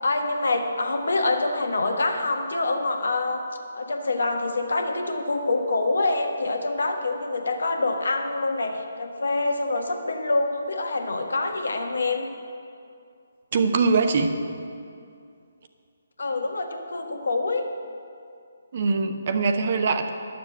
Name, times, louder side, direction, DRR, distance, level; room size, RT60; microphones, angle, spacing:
voice 1, 0.0-3.4 3.7-12.3 16.2-17.6, left 2 dB, 65° left, 4 dB, 1.3 m, -26 dB
voice 2, 13.5-14.4 18.7-20.1, right 4 dB, 45° right, 7 dB, 0.9 m, -22 dB
11.0 x 6.9 x 8.4 m, 2.4 s
figure-of-eight pair, 140°, 0 cm